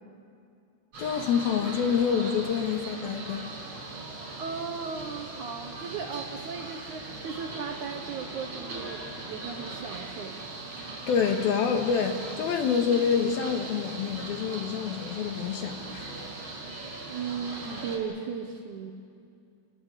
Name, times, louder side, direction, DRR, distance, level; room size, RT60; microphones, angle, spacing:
sound 1, 0.9-18.0, right 3 dB, 30° right, 5.7 m, -39 dB
voice 1, 1.0-3.5 10.8-16.1, left 7 dB, 70° left, 5 dB, 3.3 m, -27 dB
voice 2, 4.4-10.4 17.1-18.9, right 6 dB, 65° right, 3 dB, 2.1 m, -36 dB
29.5 x 18.0 x 8.2 m, 2.4 s
omnidirectional pair, 4.7 m